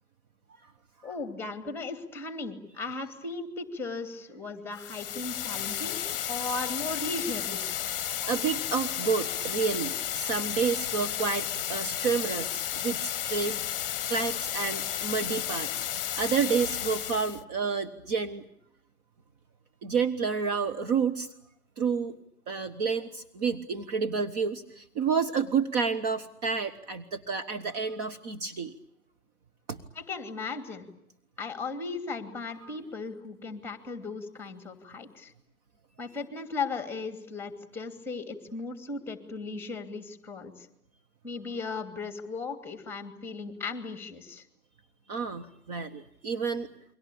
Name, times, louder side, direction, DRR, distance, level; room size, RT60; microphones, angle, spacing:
voice 1, 1.0-6.0 6.3-7.6 29.9-30.9 31.4-35.3 36.0-40.7 41.2-44.4, left 3 dB, 5° left, 9 dB, 2.7 m, -36 dB
sound 1, 4.7-17.4, left 11 dB, 35° left, 1.1 m, -33 dB
voice 2, 8.2-13.6 14.1-15.9 16.2-18.4 19.8-21.3 21.8-22.2 22.5-28.7 29.7-29.8 32.6-32.7 45.1-46.7, right 5 dB, 25° right, 7 dB, 1.3 m, -30 dB
30.0 x 23.5 x 8.6 m, 0.75 s
figure-of-eight pair, 130°, 45 cm